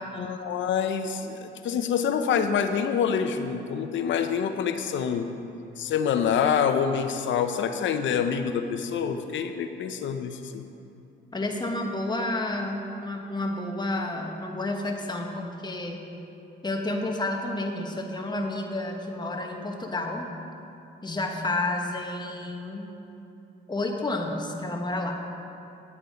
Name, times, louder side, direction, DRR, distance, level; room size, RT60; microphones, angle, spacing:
voice 1, 0.2-5.3 5.8-10.6, left 7 dB, 70° left, 8 dB, 0.8 m, -26 dB
voice 2, 11.3-16.0 16.6-20.3 21.0-22.9 23.7-25.2, left 2 dB, 20° left, 2 dB, 1.3 m, -30 dB
9.8 x 8.9 x 5.1 m, 2.8 s
cardioid pair, 90°, 20 cm